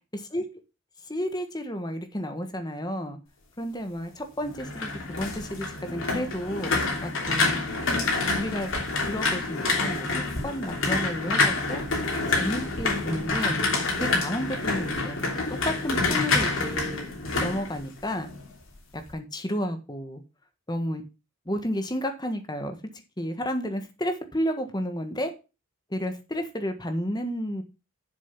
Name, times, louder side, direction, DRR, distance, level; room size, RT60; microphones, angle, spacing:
voice 1, 0.1-0.4 1.1-3.2 3.6-6.7 7.0-7.6 8.3-8.7 9.1-11.8 12.4-13.6 13.9-17.1 17.4-18.3 18.9-20.2 20.7-21.0 21.5-22.8 23.2-25.3 25.9-27.6, equal, 20° left, 7 dB, 1.4 m, -31 dB
sound 1, 4.4-18.4 18.7-19.1, left 3 dB, 65° left, 3.0 m, -27 dB
7.3 x 7.0 x 6.0 m, 0.30 s
head